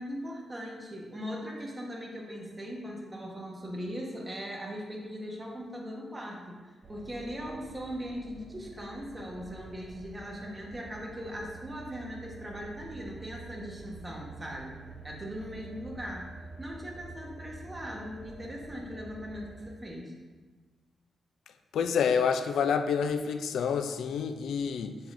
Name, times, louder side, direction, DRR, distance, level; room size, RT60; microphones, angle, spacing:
voice 1, 0.0-14.7 15.0-16.3 16.6-20.1, equal, 15° right, -2 dB, 1.2 m, -39 dB
sound 1, 6.8-19.7, right 3 dB, 35° right, 0.7 m, -48 dB
voice 2, 21.7-25.0, left 6 dB, 90° left, 8 dB, 0.4 m, -28 dB
7.6 x 7.1 x 2.6 m, 1.3 s
wide cardioid pair, 160°, 0 cm